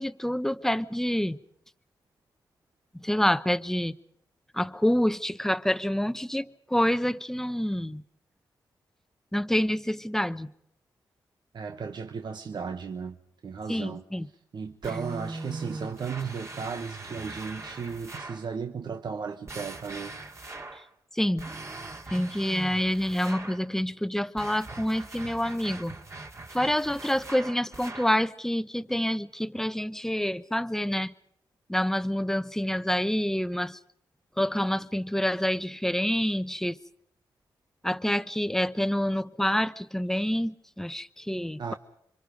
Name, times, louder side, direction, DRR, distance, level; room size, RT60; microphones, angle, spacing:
voice 1, 0.0-1.4 2.9-3.9 4.5-8.0 9.3-10.5 13.7-14.3 21.1-21.5 22.1-26.0 26.5-31.1 31.7-33.8 34.4-36.8 37.8-41.7, equal, 5° left, 0.9 m, -27 dB
voice 2, 11.5-13.2 13.4-14.0 14.5-20.2 41.6-41.7, right 6 dB, 60° right, 1.2 m, -35 dB
sound 1, 14.8-18.5 19.5-20.9 21.4-23.7 24.4-28.2, right 2 dB, 35° right, 2.5 m, -41 dB
27.0 x 24.5 x 5.2 m
cardioid pair, 60°, 8 cm